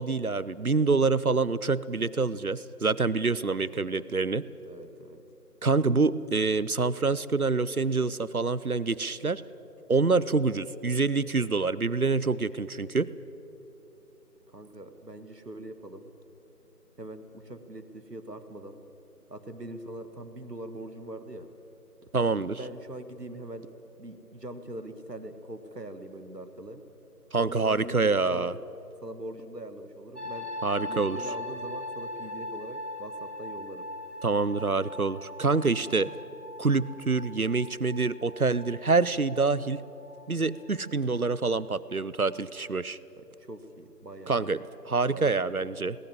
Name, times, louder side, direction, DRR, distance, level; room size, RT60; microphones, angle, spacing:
voice 1, 0.0-4.4 5.6-9.4 9.9-13.1 22.1-22.6 27.3-28.5 30.6-31.2 34.2-36.1 36.6-39.8 40.3-43.0 44.3-44.6 44.8-46.0, right 4 dB, 60° right, 18 dB, 0.7 m, -26 dB
voice 2, 3.6-4.1 4.6-5.2 14.5-16.1 17.0-18.8 19.3-21.5 22.6-26.8 27.4-28.5 29.0-30.5 30.9-33.9 43.2-44.6 45.1-45.6, right 1 dB, 80° right, 9 dB, 2.0 m, -42 dB
sound 1, 30.1-41.9 42.2-42.6, left 1 dB, 70° left, 6.7 m, -41 dB
21.0 x 19.5 x 7.5 m, 2.9 s
figure-of-eight pair, 180°, 48 cm